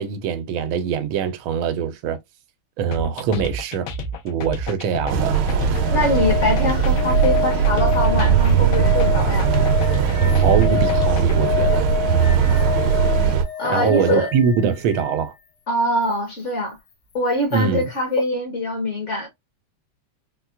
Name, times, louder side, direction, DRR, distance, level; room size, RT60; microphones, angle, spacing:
voice 1, 0.0-2.2 2.8-3.9 4.2-5.4 10.4-11.9 13.7-15.3 17.5-17.9, right 6 dB, 90° right, 1.4 m, -23 dB
sound 1, 2.9-11.6, equal, 85° left, 1.6 m, -30 dB
sound 2, 5.1-13.4, right 7 dB, 70° right, 1.2 m, -19 dB
sound 3, 5.4-15.2 17.5-17.6, left 9 dB, 65° left, 1.1 m, -28 dB
voice 2, 5.9-9.5 13.6-14.3 15.7-16.8 17.1-19.3, left 1 dB, 40° left, 1.2 m, -23 dB
4.2 x 2.2 x 2.2 m
omnidirectional pair, 2.2 m